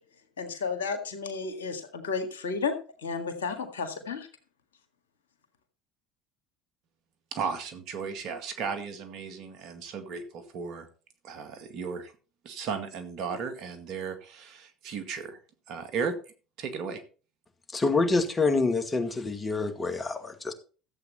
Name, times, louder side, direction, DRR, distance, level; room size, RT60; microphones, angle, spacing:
voice 1, 0.4-2.8 3.0-4.3, left 5 dB, 85° left, 7 dB, 1.8 m, -32 dB
voice 2, 7.3-10.9 11.2-12.1 12.4-15.4 15.7-16.1 16.6-17.0, right 6 dB, 60° right, 8 dB, 2.0 m, -35 dB
voice 3, 17.7-20.5, left 3 dB, 25° left, 7 dB, 2.2 m, -26 dB
13.5 x 8.0 x 4.2 m, 0.37 s
hypercardioid pair, 70°, 0 cm